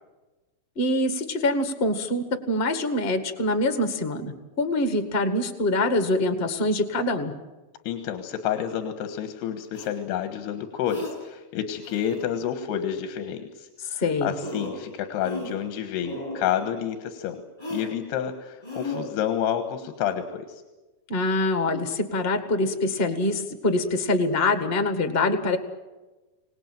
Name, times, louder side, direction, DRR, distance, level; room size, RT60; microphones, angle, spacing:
voice 1, 0.7-7.3 14.0-14.3 21.1-25.6, left 2 dB, 55° left, 9 dB, 0.6 m, -24 dB
voice 2, 7.8-17.4 17.7-20.6, left 9 dB, 85° left, 8 dB, 3.4 m, -29 dB
sound 1, 9.7-9.9 10.8-11.1 11.8-12.3 14.0-14.1 14.4-14.8 15.2-15.7 16.0-16.5 17.6-17.9 18.6-19.0, left 1 dB, 5° left, 6.4 m, -35 dB
26.0 x 18.5 x 9.0 m, 1.2 s
omnidirectional pair, 4.6 m